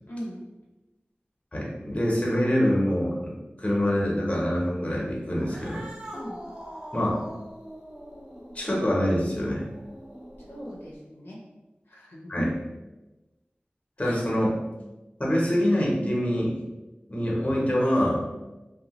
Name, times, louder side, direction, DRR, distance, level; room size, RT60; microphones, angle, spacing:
voice 1, 0.1-0.4 6.1-6.4 10.5-11.4 11.9-12.5 14.0-14.2, equal, 85° left, -4 dB, 0.6 m, -38 dB
voice 2, 1.5-5.8 6.9-7.2 8.5-9.6 12.3-12.5 14.0-14.6 15.2-16.6 17.1-18.3, equal, 35° left, -4 dB, 0.8 m, -25 dB
Cat, 5.3-10.9, equal, 20° right, 0.5 m, -43 dB
2.8 x 2.2 x 2.9 m, 1.1 s
wide cardioid pair, 60°, 4 cm